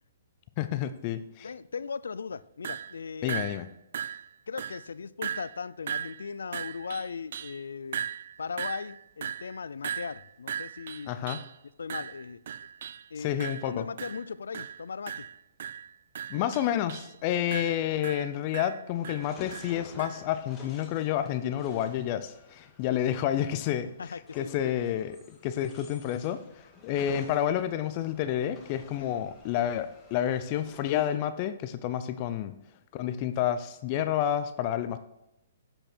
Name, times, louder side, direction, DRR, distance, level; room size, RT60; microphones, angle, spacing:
voice 1, 0.6-1.5 3.2-3.7 11.1-11.4 13.2-13.8 16.3-23.9 24.4-32.5 32.9-35.0, left 11 dB, 35° left, 11 dB, 0.6 m, -29 dB
voice 2, 1.4-3.6 4.5-8.1 8.4-11.2 11.8-12.4 13.1-15.3 24.0-24.5 29.0-29.1, left 5 dB, 90° left, 18 dB, 0.4 m, -38 dB
sound 1, 2.6-3.0 3.3-3.7 3.9-4.3 4.6-4.9 5.2-5.6 5.9-7.6 7.9-11.6 11.9-13.1 13.4-13.7 14.0-14.3 14.5-14.8 15.1-17.1 17.5-20.2, right 8 dB, 60° right, 0.3 m, -38 dB
sound 2, 18.9-31.1, left 3 dB, 15° left, 1.9 m, -52 dB
8.8 x 7.7 x 4.4 m, 0.90 s
hypercardioid pair, 150°, 0 cm